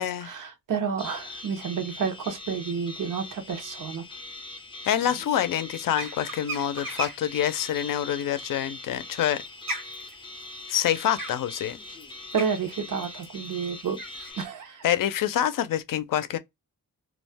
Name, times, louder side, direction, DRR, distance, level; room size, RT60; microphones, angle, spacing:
voice 1, 0.0-4.0 12.3-14.0 14.4-14.8, right 6 dB, 70° right, 0.7 m, -30 dB
sound 1, 1.0-14.5, left 2 dB, 15° left, 0.4 m, -42 dB
voice 2, 4.8-9.4 10.7-11.8 14.8-16.4, left 10 dB, 75° left, 0.5 m, -26 dB
sound 2, 5.9-7.3 8.7-14.3, right 2 dB, 90° right, 1.2 m, -37 dB
2.4 x 2.1 x 3.3 m
wide cardioid pair, 115°, 33 cm